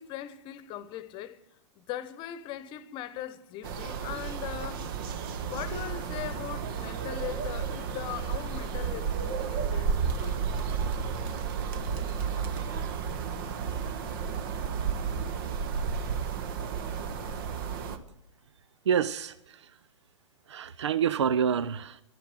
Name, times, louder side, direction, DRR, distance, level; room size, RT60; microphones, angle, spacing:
voice 1, 0.0-1.4 1.8-4.9 5.5-10.5, left 12 dB, 30° left, 1.1 m, -40 dB
sound 1, 3.6-18.0, right 6 dB, 45° right, 1.2 m, -32 dB
voice 2, 18.9-19.7 20.5-22.0, right 7 dB, 65° right, 0.6 m, -27 dB
12.0 x 10.0 x 8.0 m
figure-of-eight pair, 100°, 16 cm